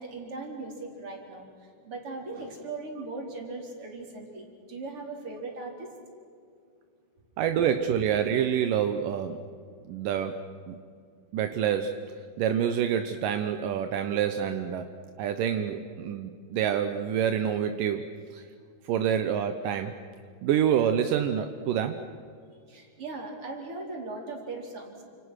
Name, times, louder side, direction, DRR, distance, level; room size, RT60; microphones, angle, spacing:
voice 1, 0.0-1.4 1.9-5.9 22.7-24.9, right 3 dB, 35° right, 1 dB, 4.7 m, -38 dB
voice 2, 7.4-9.4 9.9-10.8 11.3-12.0 12.4-14.9 15.2-18.0 18.3-18.4 18.9-19.9 20.4-22.0, right 9 dB, 70° right, 8 dB, 2.1 m, -27 dB
29.5 x 27.5 x 6.5 m, 2.2 s
omnidirectional pair, 4.9 m